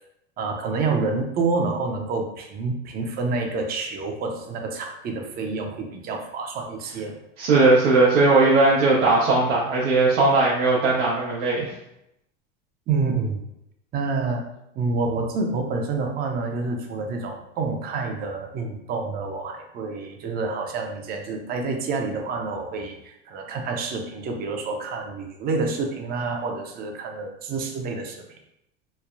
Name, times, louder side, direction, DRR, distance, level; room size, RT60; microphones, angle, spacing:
voice 1, 0.4-7.1 12.9-13.4 13.9-14.5 14.8-28.2, right 4 dB, 25° right, 3 dB, 0.5 m, -28 dB
voice 2, 7.4-11.7, right 3 dB, 85° right, -5 dB, 0.7 m, -18 dB
3.1 x 2.1 x 2.4 m, 0.81 s
hypercardioid pair, 105°, 36 cm